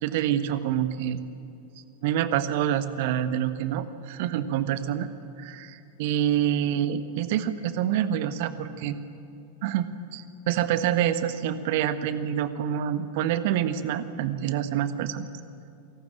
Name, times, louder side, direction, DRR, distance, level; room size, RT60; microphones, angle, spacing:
voice 1, 0.0-1.2 2.0-5.1 5.4-9.0 9.6-15.3, right 10 dB, 50° right, 11 dB, 1.4 m, -27 dB
27.5 x 19.0 x 8.8 m, 2.6 s
figure-of-eight pair, 90°, 0 cm